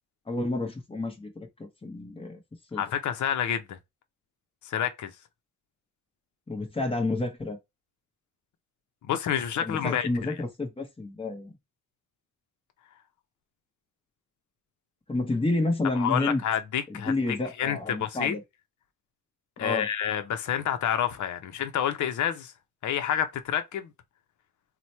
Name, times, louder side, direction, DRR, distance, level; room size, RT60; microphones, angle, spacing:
voice 1, 0.3-2.4 2.7-2.8 6.5-7.6 9.6-11.6 15.1-16.4 16.9-18.4 19.6-19.9, left 2 dB, 20° left, 0.9 m, -30 dB
voice 2, 2.8-3.8 4.6-5.1 9.0-10.1 15.9-17.1 17.6-18.4 19.6-22.5 22.8-23.9, left 9 dB, 70° left, 0.6 m, -28 dB
2.9 x 2.1 x 4.1 m
cardioid pair, 110°, 31 cm